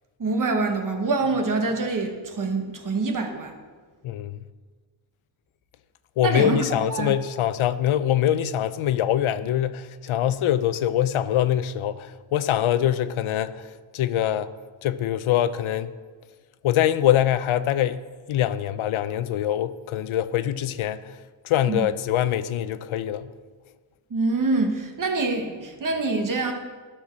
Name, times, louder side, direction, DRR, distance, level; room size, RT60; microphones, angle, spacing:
voice 1, 0.2-3.5 6.2-6.6 6.9-7.1 21.7-21.9 24.1-26.5, right 3 dB, 40° right, 1.1 m, -25 dB
voice 2, 4.0-4.4 6.2-14.5 14.8-15.9 16.6-18.0 18.3-21.2 21.4-23.3, left 11 dB, 90° left, 0.6 m, -24 dB
13.0 x 4.5 x 6.2 m
wide cardioid pair, 180°, 48 cm